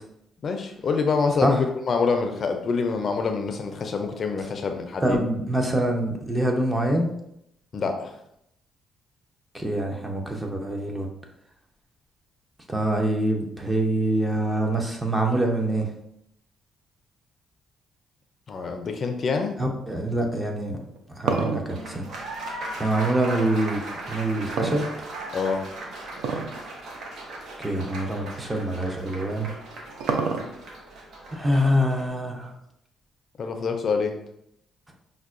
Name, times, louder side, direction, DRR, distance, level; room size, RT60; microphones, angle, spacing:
voice 1, 0.4-5.2 7.7-8.1 18.5-19.6 25.3-25.6 33.4-34.2, left 4 dB, 50° left, 5 dB, 0.4 m, -26 dB
voice 2, 5.0-7.1 9.5-11.1 12.7-15.9 19.6-20.8 21.2-22.1 22.8-23.8 24.1-25.1 27.6-29.5 31.3-32.5, right 1 dB, 15° right, 2 dB, 0.6 m, -25 dB
sound 1, 20.7-23.2 24.6-25.4 26.2-26.6 26.9-27.0 27.8-27.9 29.3-30.8, right 5 dB, 85° right, 0.4 m, -28 dB
Applause, 21.7-32.1, right 2 dB, 70° right, 0.8 m, -38 dB
5.3 x 2.1 x 2.4 m, 0.77 s
cardioid pair, 90°, 0 cm